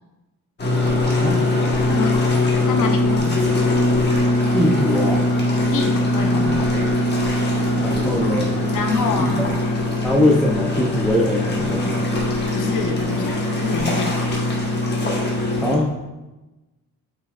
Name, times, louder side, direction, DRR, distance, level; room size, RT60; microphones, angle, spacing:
sound 1, 0.6-15.8, left 1 dB, 30° left, 1.2 m, -21 dB
voice 1, 1.9-2.3 2.7-3.6 5.7-7.0 8.7-9.5 12.5-14.3, left 4 dB, 55° left, 3 dB, 0.8 m, -26 dB
voice 2, 4.5-5.2 7.8-8.5 9.2-9.3 10.0-12.0 15.6-15.9, left 1 dB, ahead, -3 dB, 0.4 m, -21 dB
8.0 x 5.6 x 2.4 m, 1.1 s
cardioid pair, 180°, 37 cm